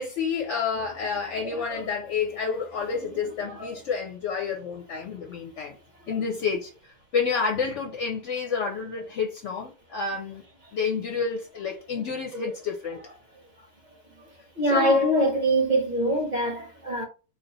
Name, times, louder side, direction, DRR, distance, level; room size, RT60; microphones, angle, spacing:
voice 1, 0.0-5.8 6.1-10.4 10.7-13.0 14.7-15.0, left 5 dB, 65° left, 0.7 m, -29 dB
voice 2, 1.4-1.8 3.6-3.7 14.6-17.0, right 1 dB, 35° right, 0.7 m, -24 dB
3.2 x 2.3 x 4.1 m
omnidirectional pair, 1.8 m